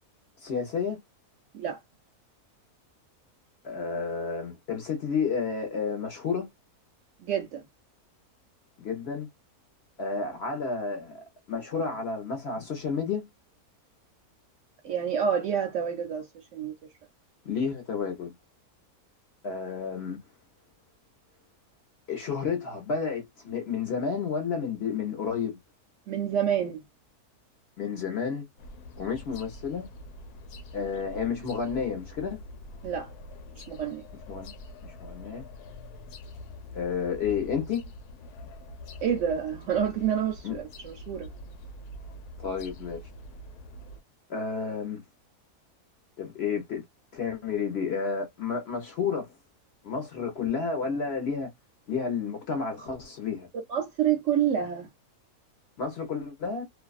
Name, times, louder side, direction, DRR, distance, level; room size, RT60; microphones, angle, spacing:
voice 1, 0.4-1.0 3.6-6.5 8.8-9.3 10.0-13.3 17.4-18.3 19.4-20.2 22.1-25.6 27.8-28.5 29.0-29.9 30.7-32.4 34.3-34.5 34.8-35.5 36.7-37.9 40.4-40.6 42.4-43.0 44.3-45.0 46.2-46.8 47.1-49.3 49.8-51.5 51.9-53.5 55.8-56.6, left 5 dB, 55° left, 0.8 m, -31 dB
voice 2, 7.2-7.7 14.8-16.7 26.1-26.8 32.8-33.1 33.6-34.0 39.0-41.3 53.7-54.9, right 8 dB, 65° right, 0.7 m, -28 dB
sound 1, 28.6-44.0, left 1 dB, 85° left, 1.1 m, -45 dB
2.6 x 2.2 x 2.3 m
omnidirectional pair, 1.6 m